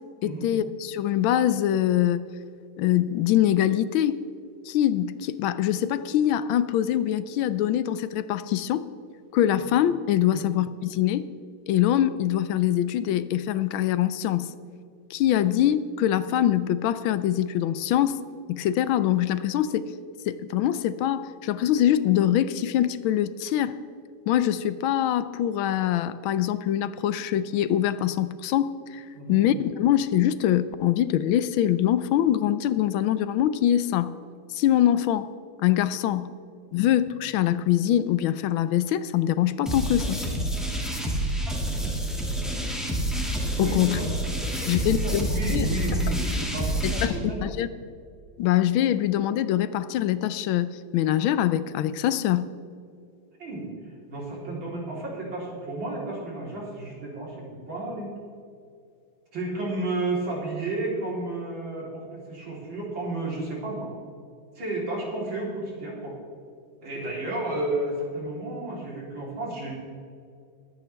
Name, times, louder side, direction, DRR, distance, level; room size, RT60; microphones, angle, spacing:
voice 1, 0.2-2.2 2.8-4.2 4.6-8.8 9.3-11.3 11.7-14.5 15.1-18.2 18.5-19.9 20.3-23.8 24.3-29.0 29.3-34.1 34.5-35.3 35.6-36.3 36.7-40.2 43.6-44.0 44.7-45.7 46.8-47.1 47.4-47.7 48.4-52.5, left 11 dB, 80° left, 14 dB, 1.4 m, -24 dB
sound 1, 39.7-47.1, right 1 dB, ahead, 2.0 m, -28 dB
voice 2, 43.6-44.1 44.4-47.4 53.4-53.7 54.1-58.1 59.3-63.9 64.6-66.2 66.8-69.7, right 2 dB, 70° right, -4 dB, 4.4 m, -32 dB
23.0 x 9.3 x 3.4 m, 2.4 s
omnidirectional pair, 2.2 m